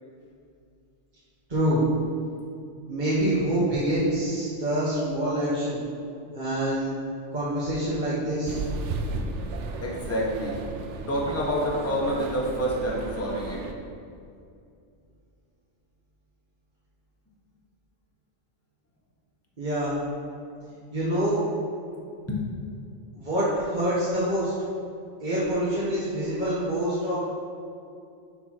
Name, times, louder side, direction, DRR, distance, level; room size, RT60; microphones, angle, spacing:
voice 1, 1.5-1.8 2.9-5.8 6.3-7.0 7.3-8.6 19.6-19.9 20.9-21.4 23.1-24.5 25.2-27.2, right 1 dB, 40° right, -11 dB, 1.8 m, -26 dB
sound 1, 8.5-13.7, right 3 dB, 85° right, 1.0 m, -34 dB
voice 2, 9.8-10.6 11.1-13.6 22.3-22.6, equal, 15° left, -4 dB, 1.1 m, -27 dB
6.5 x 4.8 x 6.0 m, 2.4 s
omnidirectional pair, 1.2 m